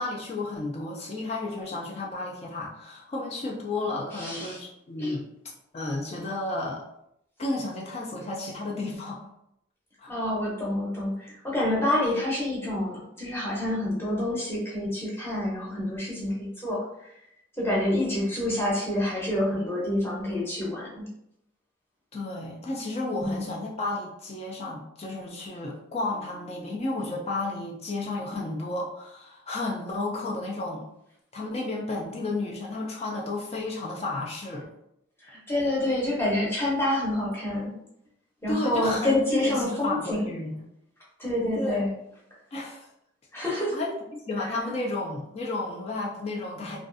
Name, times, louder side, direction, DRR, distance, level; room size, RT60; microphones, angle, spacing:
voice 1, 0.0-5.3 5.7-6.8 7.4-9.3 10.0-10.1 22.1-30.8 31.3-34.6 38.5-40.7 41.6-41.9 42.5-42.9 43.4-46.8, left 2 dB, 30° left, -1 dB, 0.3 m, -32 dB
voice 2, 4.1-4.6 5.0-5.1 10.1-17.1 17.6-21.1 23.2-23.5 35.2-37.7 38.4-40.3 41.2-41.9 43.3-43.9 44.4-44.5, left 1 dB, 10° left, -6 dB, 0.7 m, -28 dB
2.5 x 2.3 x 2.4 m, 0.78 s
head